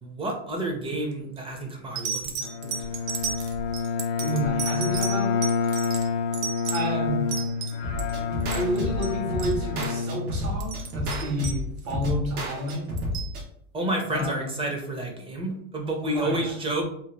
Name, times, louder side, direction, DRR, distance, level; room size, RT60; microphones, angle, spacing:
voice 1, 0.0-2.3 2.6-3.0 13.7-16.9, right 1 dB, 15° right, 2 dB, 0.4 m, -30 dB
sound 1, 1.1-1.4 1.9-8.1 8.4-9.1 9.4-9.6 9.8-10.0 10.4-12.0 12.7-13.3 14.2-14.3, right 6 dB, 40° right, 0.7 m, -34 dB
Bowed string instrument, 2.4-10.9, left 5 dB, 70° left, 0.5 m, -28 dB
voice 2, 4.2-6.0 6.7-7.2 8.5-12.9 14.1-14.5 16.0-16.5, equal, 65° right, 0 dB, 1.4 m, -30 dB
sound 2, 7.8-13.4, left 1 dB, 85° right, 1.0 m, -31 dB
2.9 x 2.2 x 3.2 m, 0.69 s
supercardioid pair, 130°, 41 cm